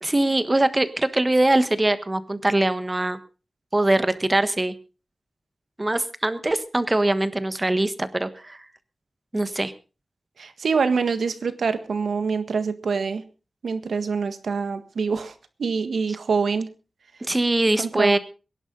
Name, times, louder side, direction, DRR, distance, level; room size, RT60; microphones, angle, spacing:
voice 1, 0.0-3.2 3.7-4.7 5.8-8.6 9.3-9.7 17.2-18.2, right 1 dB, 20° right, 12 dB, 1.3 m, -22 dB
voice 2, 10.4-13.2 13.6-15.3 15.6-16.7 17.8-18.2, right 5 dB, 85° right, 10 dB, 1.6 m, -25 dB
22.5 x 11.0 x 3.9 m, 0.34 s
wide cardioid pair, 95°, 0 cm